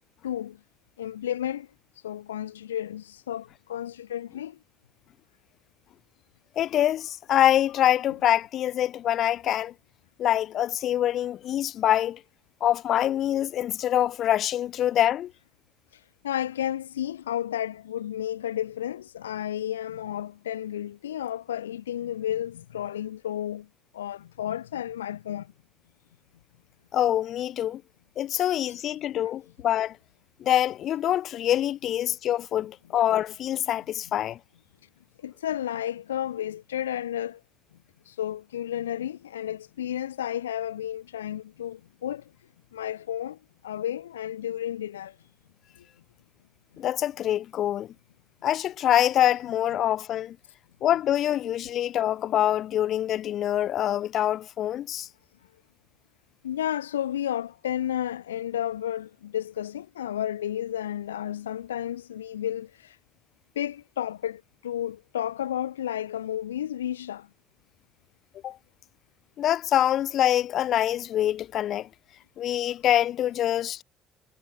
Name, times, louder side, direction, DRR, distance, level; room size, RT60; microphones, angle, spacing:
voice 1, 0.2-0.6 1.0-1.7 1.9-4.6 8.1-8.2 14.8-14.9 15.9-23.7 23.9-25.5 28.4-28.8 29.2-29.3 35.2-37.4 38.0-42.3 42.7-45.2 45.8-45.9 49.4-49.8 50.9-51.0 56.4-63.0 63.6-67.3, left 11 dB, 85° left, 0.5 m, -32 dB
voice 2, 6.6-9.7 10.2-12.2 12.6-15.3 26.9-27.8 28.2-30.0 30.4-34.4 46.8-47.9 48.4-50.4 50.8-55.1 68.4-68.6 69.4-71.9 72.4-73.8, left 11 dB, 60° left, 0.9 m, -25 dB
hypercardioid pair, 50°, 0 cm